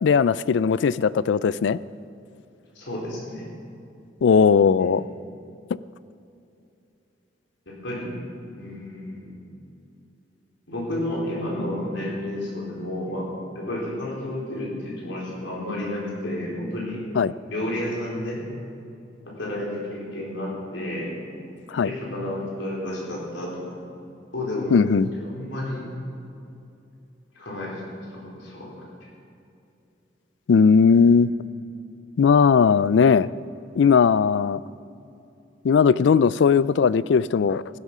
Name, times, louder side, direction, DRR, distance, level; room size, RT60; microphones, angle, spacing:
voice 1, 0.0-1.8 4.2-5.0 17.2-17.3 21.7-21.9 24.7-25.1 30.5-31.3 32.2-33.3 33.8-34.6 35.6-37.6, left 6 dB, 70° left, 19 dB, 0.4 m, -18 dB
voice 2, 2.7-3.4 4.8-5.0 7.7-8.1 8.6-9.4 10.7-13.3 13.5-17.0 17.5-18.4 19.3-21.1 21.8-23.8 24.3-24.8 25.1-25.8 27.3-28.7 30.9-31.0, left 1 dB, 90° left, -3 dB, 4.3 m, -31 dB
16.0 x 12.0 x 5.5 m, 2.7 s
head